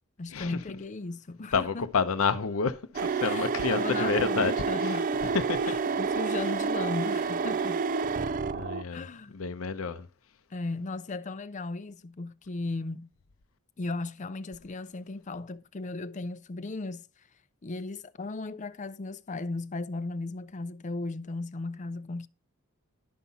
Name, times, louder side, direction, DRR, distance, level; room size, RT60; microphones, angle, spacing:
voice 1, 0.2-1.9 3.2-5.1 5.6-7.8 8.9-9.4 10.5-13.1 13.8-17.3 17.6-22.3, left 3 dB, 35° left, 0.5 m, -36 dB
voice 2, 1.5-4.5 4.8-5.0 5.2-5.8 8.5-9.1 9.3-10.1, left 5 dB, 85° left, 0.7 m, -29 dB
sound 1, 2.9-8.8, right 5 dB, 40° right, 0.4 m, -29 dB
11.5 x 5.6 x 4.1 m
head